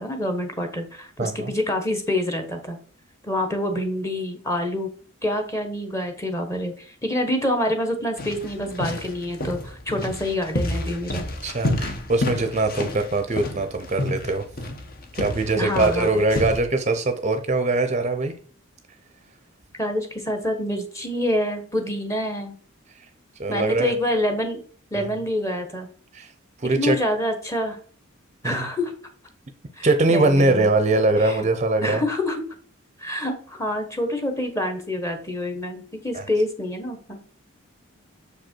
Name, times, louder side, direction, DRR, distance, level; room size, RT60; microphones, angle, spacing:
voice 1, 0.0-2.8 3.2-4.9 5.2-11.2 15.5-16.2 19.8-22.5 23.5-24.6 24.9-25.9 26.7-27.8 28.4-28.9 29.8-30.7 31.2-31.5 31.8-32.4 33.0-37.2, left 1 dB, 15° left, 5 dB, 1.2 m, -27 dB
voice 2, 1.2-1.5 11.4-14.4 15.2-18.3 23.4-23.9 24.9-25.1 26.1-26.3 26.6-27.0 28.4-28.7 29.8-32.0 36.1-36.2, right 2 dB, 35° right, 7 dB, 0.6 m, -22 dB
sound 1, 8.2-16.6, left 1 dB, 45° left, 1.0 m, -30 dB
6.6 x 5.2 x 4.5 m, 0.43 s
head